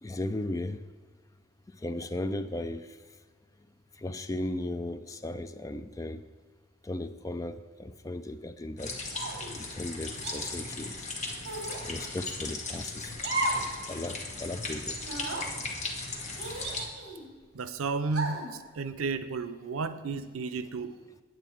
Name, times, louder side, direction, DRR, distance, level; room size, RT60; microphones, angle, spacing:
voice 1, 0.0-0.8 1.8-3.0 4.0-6.2 6.8-9.0 9.5-11.1 11.8-13.1 13.5-15.0, left 1 dB, 15° left, 11 dB, 0.3 m, -36 dB
sound 1, 8.8-16.8, left 3 dB, 35° left, 1.2 m, -37 dB
sound 2, 9.1-9.5 10.2-10.4 11.4-11.9 13.2-13.7 14.1-14.2 15.0-15.5 16.4-17.3 18.1-18.5, right 2 dB, 55° right, 1.9 m, -34 dB
voice 2, 17.5-21.0, right 4 dB, 90° right, 12 dB, 0.6 m, -33 dB
9.0 x 7.9 x 4.6 m, 1.5 s
head